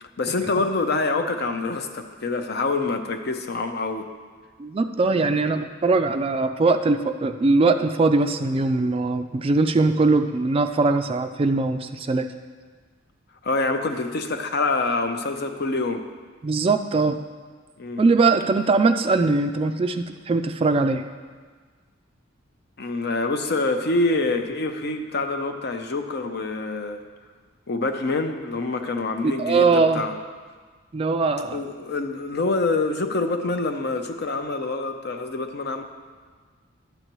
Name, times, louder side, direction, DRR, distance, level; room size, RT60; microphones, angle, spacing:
voice 1, 0.0-4.1 13.4-16.0 17.8-18.1 22.8-27.0 27.7-30.1 31.5-35.8, left 3 dB, 55° left, 6 dB, 0.7 m, -26 dB
voice 2, 4.6-12.3 16.4-17.2 18.0-21.0 29.2-30.0 30.9-31.6, right 3 dB, 30° right, 8 dB, 0.3 m, -21 dB
11.5 x 7.9 x 3.1 m, 1.5 s
head